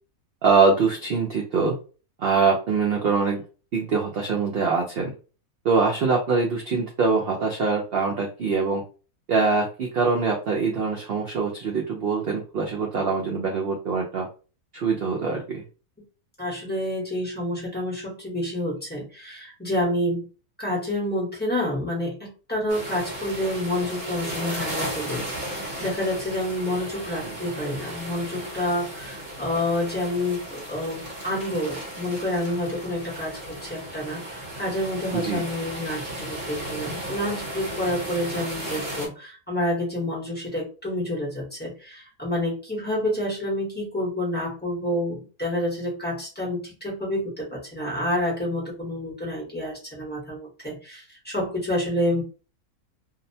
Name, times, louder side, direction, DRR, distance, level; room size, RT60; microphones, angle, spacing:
voice 1, 0.4-1.8 2.2-3.4 3.7-5.1 5.6-8.8 9.3-14.3 14.7-15.6 35.1-35.4, right 4 dB, 65° right, -1 dB, 0.5 m, -23 dB
voice 2, 16.4-20.3 20.6-52.2, left 1 dB, 10° left, -5 dB, 0.8 m, -28 dB
sound 1, 22.7-39.1, right 1 dB, 35° right, 1.1 m, -35 dB
2.7 x 2.1 x 2.6 m, 0.35 s
omnidirectional pair, 1.6 m